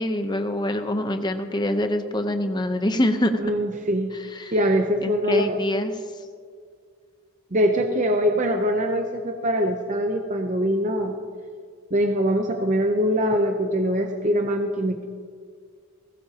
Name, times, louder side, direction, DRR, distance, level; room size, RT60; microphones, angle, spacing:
voice 1, 0.0-3.4 4.3-4.5 5.0-5.9, left 1 dB, 20° left, 7 dB, 0.8 m, -25 dB
voice 2, 3.4-4.1 4.5-5.6 7.5-11.2 11.9-15.1, equal, 35° right, 4 dB, 0.7 m, -23 dB
19.5 x 15.5 x 2.9 m, 2.1 s
head